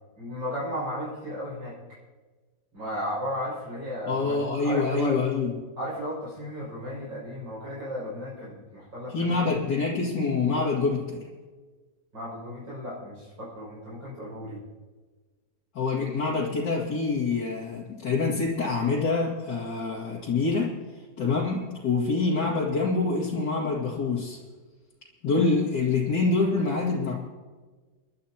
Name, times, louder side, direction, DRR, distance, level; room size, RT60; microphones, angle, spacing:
voice 1, 0.2-2.0 2.7-5.2 5.8-9.6 12.1-14.6, equal, 80° right, -8 dB, 6.9 m, -35 dB
voice 2, 4.1-5.5 9.1-11.2 15.7-20.7 21.2-24.4 25.2-27.1, left 4 dB, 70° left, -6 dB, 2.8 m, -26 dB
29.0 x 12.0 x 2.9 m, 1.3 s
omnidirectional pair, 2.0 m